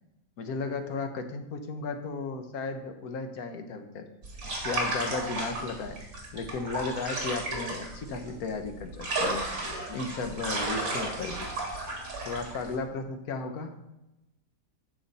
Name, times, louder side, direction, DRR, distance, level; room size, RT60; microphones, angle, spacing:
voice 1, 0.4-4.0 4.6-6.0 6.3-9.4 9.9-11.5 12.2-13.7, left 4 dB, 70° left, 7 dB, 1.3 m, -34 dB
sound 1, 4.2-12.7, right 2 dB, 60° right, 2.4 m, -33 dB
9.4 x 6.2 x 4.1 m, 0.95 s
omnidirectional pair, 1.7 m